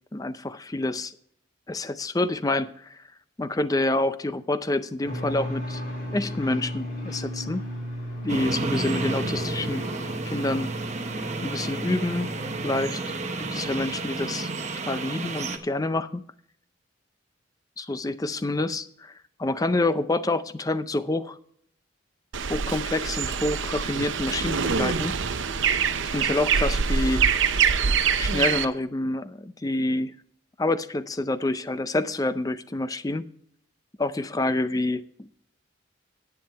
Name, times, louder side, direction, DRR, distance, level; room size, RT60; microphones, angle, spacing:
voice 1, 0.1-1.1 1.7-3.0 3.4-5.8 6.1-7.7 8.2-9.8 10.3-10.7 11.4-12.3 12.6-13.0 13.4-14.5 14.8-16.2 17.8-19.1 19.4-21.4 22.5-25.2 25.6-25.8 26.1-27.3 28.2-30.2 30.6-33.3 34.0-35.3, left 2 dB, 20° left, 13 dB, 0.5 m, -27 dB
sound 1, 5.0-14.6, equal, 45° left, 3.1 m, -35 dB
sound 2, 8.3-15.6, right 3 dB, 35° right, 1.0 m, -32 dB
sound 3, 22.3-28.6, right 6 dB, 70° right, 0.7 m, -24 dB
10.5 x 9.3 x 4.5 m, 0.66 s
head